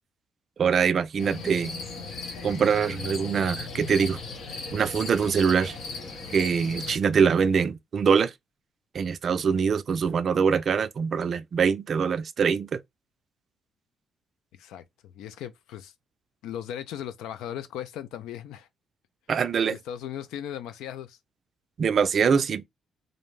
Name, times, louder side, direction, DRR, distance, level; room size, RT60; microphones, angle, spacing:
voice 1, 0.6-1.8 2.4-4.2 4.7-5.8 6.3-8.3 8.9-12.8 19.3-19.8 21.8-22.6, right 6 dB, 55° right, 0.3 m, -23 dB
sound 1, 1.2-7.0, left 4 dB, 70° left, 0.8 m, -37 dB
voice 2, 14.6-15.9 16.4-18.7 19.7-21.2, left 10 dB, 90° left, 0.4 m, -37 dB
2.6 x 2.1 x 3.1 m
cardioid pair, 85°, 0 cm